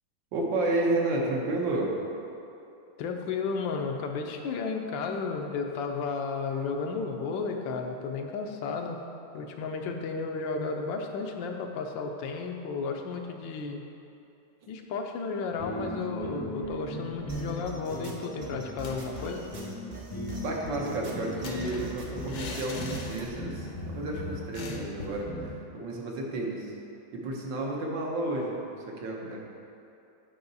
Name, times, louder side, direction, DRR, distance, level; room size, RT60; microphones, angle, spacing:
voice 1, 0.3-2.0 20.4-26.7 27.1-29.4, right 2 dB, 80° right, -1 dB, 1.7 m, -31 dB
voice 2, 3.0-9.0 9.3-13.8 14.7-19.5, left 4 dB, 85° left, 3 dB, 1.4 m, -33 dB
sound 1, 15.5-25.6, equal, 25° left, 0.4 m, -38 dB
sound 2, 17.3-23.3, right 2 dB, 45° right, 0.8 m, -43 dB
sound 3, 18.7-19.5 19.8-19.9 20.2-23.6 23.9-24.0 24.5-25.3, left 3 dB, 60° left, 0.8 m, -43 dB
8.4 x 5.5 x 4.0 m, 2.8 s
omnidirectional pair, 2.0 m